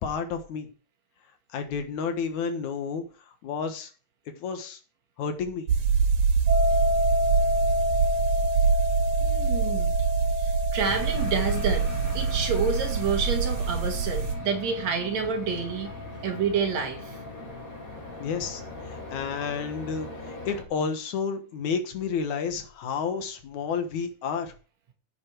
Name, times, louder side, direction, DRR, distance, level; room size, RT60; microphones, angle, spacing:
voice 1, 0.0-0.7 1.5-3.0 3.4-3.9 4.3-4.8 5.2-5.7 18.2-18.6 18.9-24.5, left 6 dB, 75° left, 2.9 m, -31 dB
sound 1, 5.7-14.4, right 5 dB, 85° right, 3.3 m, -25 dB
sound 2, 6.5-17.4, left 2 dB, 30° right, 1.8 m, -31 dB
voice 2, 9.2-10.0 10.4-11.9 12.1-15.9 16.2-17.2, right 5 dB, 65° right, 3.1 m, -28 dB
sound 3, 10.8-20.6, left 2 dB, 45° left, 5.1 m, -40 dB
10.0 x 8.8 x 4.6 m
omnidirectional pair, 3.4 m